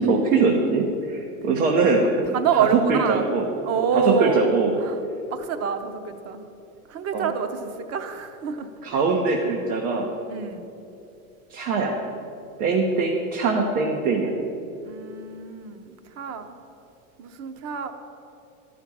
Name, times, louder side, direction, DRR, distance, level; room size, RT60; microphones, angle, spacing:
voice 1, 0.0-3.5 3.9-4.7 7.1-7.3 8.8-10.1 11.5-12.0 12.6-14.3, right 4 dB, 75° right, 0 dB, 1.4 m, -22 dB
voice 2, 2.3-3.3 3.6-4.5 4.8-5.0 5.3-6.4 6.9-9.0 10.3-10.7 14.8-16.5 17.2-17.9, right 6 dB, 35° right, 8 dB, 1.0 m, -26 dB
12.0 x 5.8 x 8.6 m, 2.7 s
hypercardioid pair, 110°, 42 cm